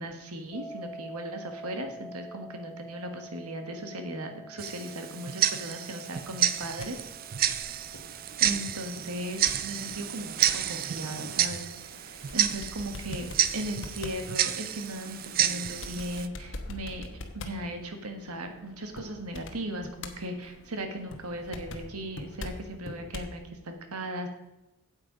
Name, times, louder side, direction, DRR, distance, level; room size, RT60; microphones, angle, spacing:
voice 1, 0.0-7.0 8.4-13.3 13.5-17.1 17.3-24.3, right 1 dB, 85° right, 6 dB, 1.5 m, -37 dB
sound 1, 0.5-11.4, right 1 dB, 20° left, 0.5 m, -48 dB
Tick-tock, 4.6-16.3, right 11 dB, 40° right, 0.4 m, -30 dB
sound 2, 6.4-23.4, left 2 dB, 55° left, 1.1 m, -45 dB
8.7 x 8.1 x 5.1 m, 0.97 s
head